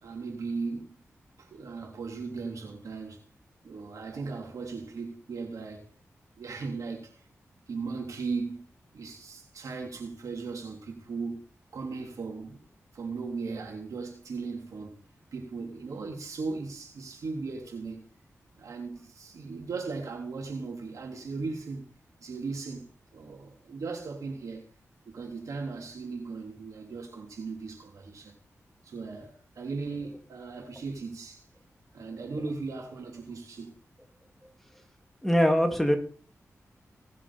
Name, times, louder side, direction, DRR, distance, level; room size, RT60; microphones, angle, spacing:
voice 1, 0.0-1.0 1.4-3.2 3.6-5.9 6.4-7.2 7.7-8.7 8.9-12.7 12.9-15.0 15.3-18.1 18.6-21.9 22.2-24.7 25.1-28.3 28.8-31.4 31.9-33.7, right 4 dB, 85° right, 3.5 m, -37 dB
voice 2, 35.2-36.0, equal, 5° left, 2.4 m, -22 dB
18.5 x 7.5 x 4.3 m
cardioid pair, 65°, 5 cm